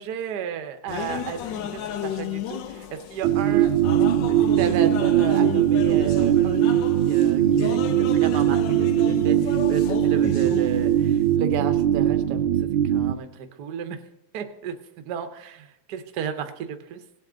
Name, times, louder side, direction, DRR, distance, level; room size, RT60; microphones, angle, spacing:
voice 1, 0.0-3.7 4.3-12.5 12.8-14.0 14.3-14.8 15.1-17.0, right 8 dB, 60° right, 7 dB, 1.3 m, -33 dB
sound 1, 0.9-11.4, left 10 dB, 70° left, 1.2 m, -34 dB
sound 2, 3.2-13.2, right 11 dB, 80° right, 1.6 m, -20 dB
17.5 x 8.4 x 3.9 m, 0.83 s
omnidirectional pair, 2.3 m